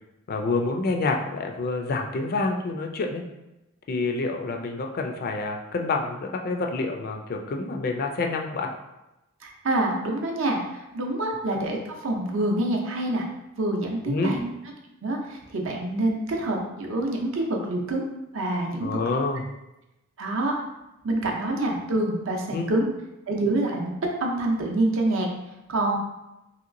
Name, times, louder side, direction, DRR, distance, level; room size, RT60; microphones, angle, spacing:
voice 1, 0.3-3.3 3.9-8.7 14.0-14.4 18.8-19.4 21.2-21.3 22.5-22.7, left 3 dB, 45° left, 3 dB, 0.3 m, -27 dB
voice 2, 9.4-10.6 10.9-13.2 13.6-14.4 15.0-18.0 18.3-18.9 20.2-20.5 21.0-22.8 23.3-23.9 24.2-25.3 25.7-26.0, right 2 dB, 65° right, 1 dB, 0.6 m, -26 dB
3.1 x 2.8 x 2.5 m, 0.95 s
head